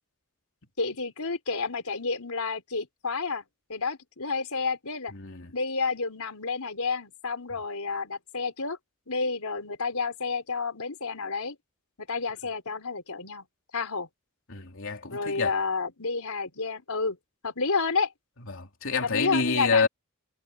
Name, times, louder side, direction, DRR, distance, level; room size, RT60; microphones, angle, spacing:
voice 1, 0.8-3.4 3.7-5.1 5.5-8.8 9.1-11.6 12.1-13.5 13.7-14.1 15.1-17.2 17.4-18.1 19.0-19.9, left 4 dB, 90° left, 3.9 m, -30 dB
voice 2, 5.1-5.5 14.5-15.6 18.5-19.9, left 4 dB, 65° left, 3.4 m, -28 dB
head